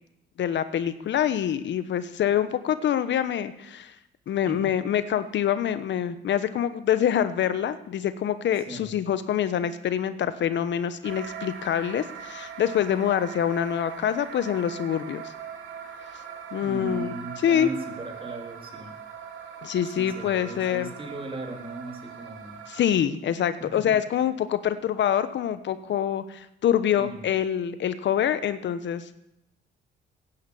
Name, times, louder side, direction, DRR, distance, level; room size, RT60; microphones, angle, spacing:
voice 1, 0.4-3.9 4.3-15.2 16.5-17.1 17.4-17.7 19.6-20.9 22.7-29.2, left 9 dB, 65° left, 12 dB, 1.0 m, -25 dB
voice 2, 8.6-9.0 16.6-19.0 19.8-22.6 23.6-23.8 27.0-27.2, right 2 dB, 25° right, 3 dB, 3.3 m, -37 dB
sound 1, 11.0-22.8, right 7 dB, 75° right, 2.4 m, -40 dB
15.5 x 9.9 x 7.0 m, 0.82 s
cardioid pair, 90°, 20 cm